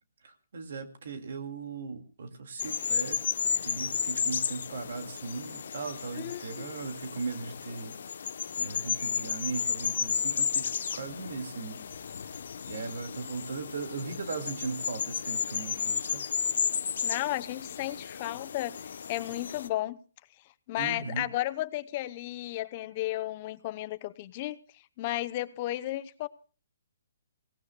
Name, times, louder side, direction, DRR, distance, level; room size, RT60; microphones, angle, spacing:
voice 1, 0.2-3.2 3.7-7.9 8.6-11.8 12.7-16.3 20.8-21.3, right 4 dB, 60° right, 6 dB, 2.1 m, -38 dB
sound 1, 2.6-19.7, left 7 dB, 60° left, 0.8 m, -33 dB
voice 2, 6.1-6.7 17.0-18.8 19.1-20.0 20.7-24.6 25.0-26.3, left 15 dB, 30° left, 14 dB, 0.7 m, -33 dB
27.5 x 18.0 x 2.2 m, 0.36 s
hypercardioid pair, 165°, 0 cm